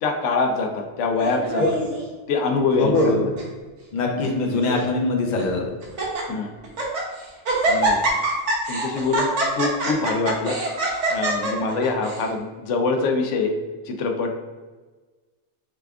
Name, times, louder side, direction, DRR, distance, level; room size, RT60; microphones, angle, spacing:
voice 1, 0.0-1.6 2.3-3.1 4.2-4.3 6.3-6.5 7.7-8.0 8.7-10.6 11.1-13.5 13.8-14.3, left 4 dB, 90° left, 4 dB, 0.9 m, -24 dB
Laughter, 1.2-2.0 2.7-3.1 3.4-3.5 4.2-4.8 5.4-5.5 5.8-6.2 6.6-7.1 7.4-12.2, right 2 dB, 80° right, 1.2 m, -24 dB
voice 2, 2.8-3.2 3.9-5.6, left 2 dB, 45° left, 0 dB, 0.7 m, -22 dB
4.9 x 3.3 x 2.4 m, 1.3 s
omnidirectional pair, 1.2 m